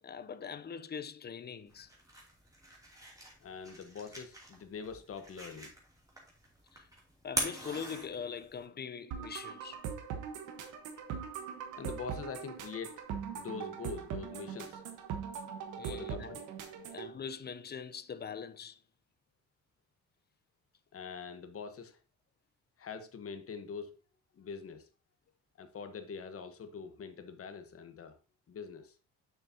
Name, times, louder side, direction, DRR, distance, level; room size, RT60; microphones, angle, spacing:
voice 1, 0.0-1.9 6.7-6.9 7.2-9.9 15.8-16.4 16.9-18.8, left 6 dB, 35° left, 0.5 m, -42 dB
sound 1, 1.7-8.6, right 1 dB, 10° right, 2.7 m, -43 dB
voice 2, 3.4-5.7 11.8-13.0 13.4-14.8 15.9-16.4 16.8-16.9 20.9-22.0 22.8-23.9 24.3-24.9 25.6-28.2 28.5-28.9, left 5 dB, 50° left, 1.1 m, -44 dB
sound 2, 9.1-17.1, right 7 dB, 90° right, 1.2 m, -41 dB
6.9 x 6.6 x 2.8 m
cardioid pair, 90°, 30 cm